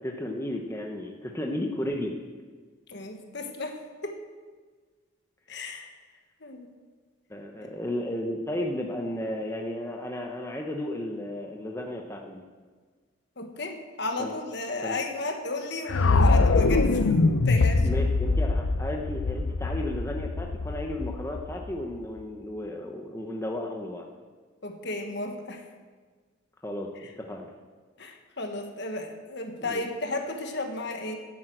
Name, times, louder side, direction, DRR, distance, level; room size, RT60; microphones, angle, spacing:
voice 1, 0.0-2.2 7.3-12.4 14.2-14.3 14.8-15.0 17.8-24.1 26.6-26.9 27.2-27.5 29.6-29.8, left 1 dB, 15° left, 1 dB, 0.9 m, -33 dB
voice 2, 2.9-4.2 5.5-5.9 6.4-6.7 13.4-17.1 17.4-17.9 24.6-25.6 27.0-27.1 28.0-31.2, left 2 dB, 55° left, 4 dB, 1.4 m, -34 dB
sound 1, 15.9-22.0, left 3 dB, 75° left, 0.6 m, -23 dB
10.0 x 9.1 x 7.9 m, 1.5 s
head